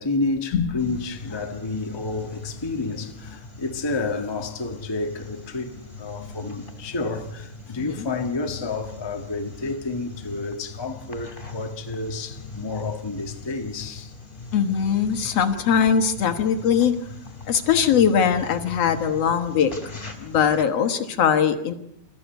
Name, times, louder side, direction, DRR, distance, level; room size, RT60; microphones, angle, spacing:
voice 1, 0.0-14.1, left 3 dB, 35° left, 0.3 m, -30 dB
sound 1, 0.8-20.6, left 4 dB, 15° left, 2.8 m, -40 dB
voice 2, 14.5-17.0 17.5-19.7 20.2-21.7, left 7 dB, 55° left, 2.2 m, -21 dB
27.0 x 14.0 x 9.2 m
omnidirectional pair, 3.8 m